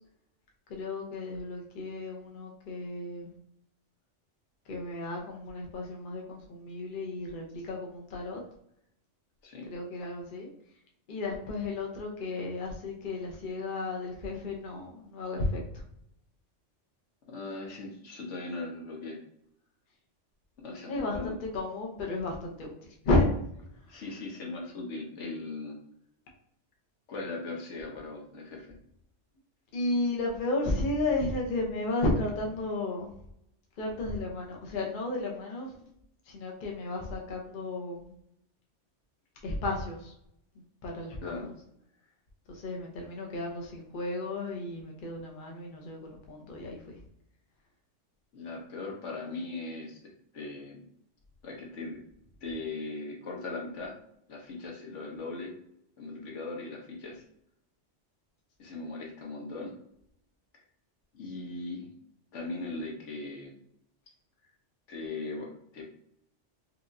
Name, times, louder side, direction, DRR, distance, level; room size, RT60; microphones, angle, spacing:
voice 1, 0.7-3.3 4.7-8.4 9.7-10.5 11.1-15.8 20.9-22.7 23.0-23.3 23.9-24.0 29.7-33.2 33.8-35.9 36.3-38.1 39.4-40.1 40.8-41.2 41.4-41.5 42.5-47.0, left 2 dB, 50° left, 0 dB, 0.8 m, -33 dB
voice 2, 17.3-19.2 20.6-21.4 23.9-25.8 27.1-28.7 41.2-41.5 48.3-50.8 51.4-52.0 52.4-54.0 54.3-55.5 56.0-57.2 58.6-59.7 61.1-61.9 62.3-63.6 64.9-65.8, left 3 dB, 75° left, 0 dB, 1.2 m, -39 dB
4.6 x 2.4 x 2.5 m, 0.74 s
omnidirectional pair, 1.3 m